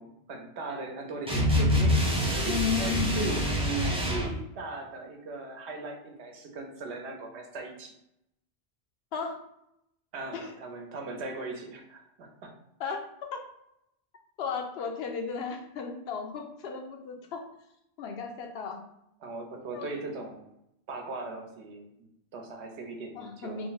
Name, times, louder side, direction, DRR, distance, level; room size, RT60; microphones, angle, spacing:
voice 1, 0.0-2.0 2.3-7.9 10.1-12.5 19.2-20.5 20.9-23.7, right 3 dB, 90° right, 3 dB, 1.0 m, -39 dB
sound 1, 1.3-4.4, equal, 5° right, 0.5 m, -26 dB
voice 2, 2.4-3.4 9.1-9.4 10.3-10.5 12.8-13.0 13.3-13.4 14.4-17.5 18.0-18.8 19.7-19.9 23.1-23.7, left 6 dB, 75° left, 3 dB, 0.8 m, -34 dB
3.0 x 2.1 x 3.8 m, 0.81 s
omnidirectional pair, 1.1 m